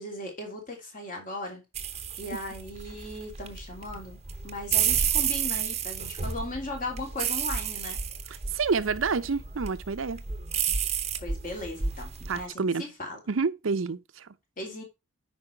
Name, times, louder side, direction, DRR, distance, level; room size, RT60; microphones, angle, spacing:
voice 1, 0.0-1.6 2.2-4.2 4.4-8.0 11.2-12.1 12.3-13.2 14.6-14.8, left 1 dB, 40° left, 3.0 m, -37 dB
sound 1, 1.7-12.4, right 7 dB, 30° right, 0.8 m, -31 dB
voice 2, 8.3-10.2 12.3-12.9 13.3-14.3, right 5 dB, 75° right, 0.6 m, -28 dB
8.7 x 5.4 x 4.3 m
head